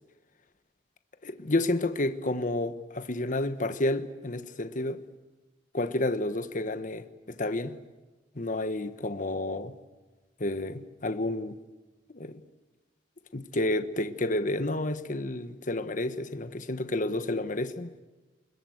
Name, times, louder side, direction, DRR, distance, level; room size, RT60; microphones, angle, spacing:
voice 1, 1.2-5.0 5.7-7.8 8.4-9.7 10.4-11.5 12.1-12.4 13.3-17.9, left 2 dB, 45° left, 1.3 m, -30 dB
29.0 x 22.0 x 8.0 m
head